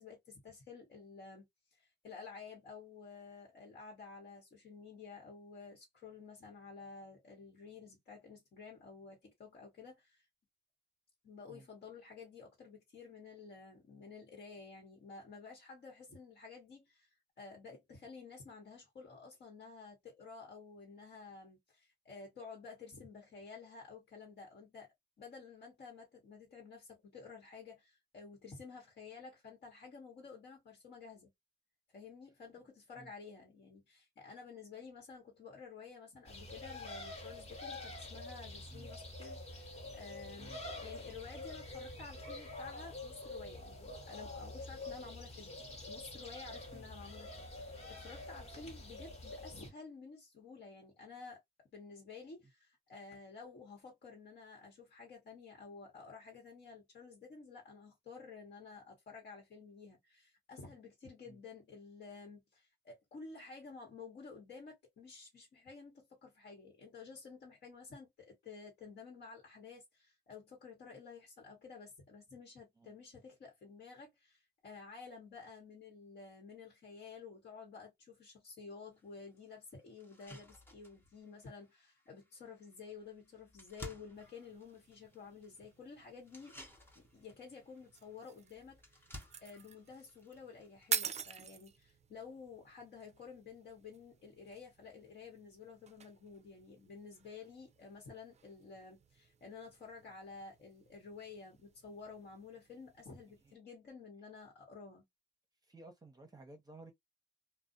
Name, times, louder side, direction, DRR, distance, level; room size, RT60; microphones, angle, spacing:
voice 1, 0.0-1.5 1.7-10.2 11.2-31.3 31.9-51.4 51.7-86.6 86.9-89.1 89.4-105.0, left 5 dB, 65° left, 1.1 m, -52 dB
sound 1, 36.2-49.7, left 2 dB, 35° left, 1.1 m, -47 dB
sound 2, 79.0-79.1 79.5-79.6 80.0-91.6, left 1 dB, 10° left, 0.9 m, -57 dB
sound 3, 84.1-103.6, right 7 dB, 40° right, 0.4 m, -48 dB
voice 2, 105.7-106.9, right 2 dB, 20° right, 0.7 m, -54 dB
2.4 x 2.0 x 2.5 m
cardioid pair, 80°, 18 cm